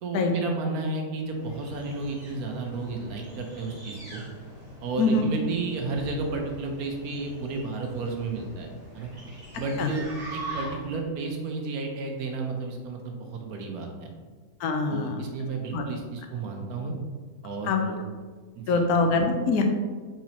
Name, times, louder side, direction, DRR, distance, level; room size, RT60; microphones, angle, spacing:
voice 1, 0.0-4.2 4.8-8.7 8.9-9.1 9.6-14.1 14.9-16.9 17.4-18.0 18.6-18.9, right 3 dB, 80° right, 2 dB, 1.2 m, -32 dB
sound 1, 1.2-11.0, right 1 dB, 40° right, 1.7 m, -43 dB
voice 2, 14.6-15.2 15.7-15.8 17.6-17.8 18.7-19.6, left 3 dB, 85° left, 4 dB, 1.1 m, -24 dB
4.6 x 3.9 x 2.8 m, 1.5 s
omnidirectional pair, 1.6 m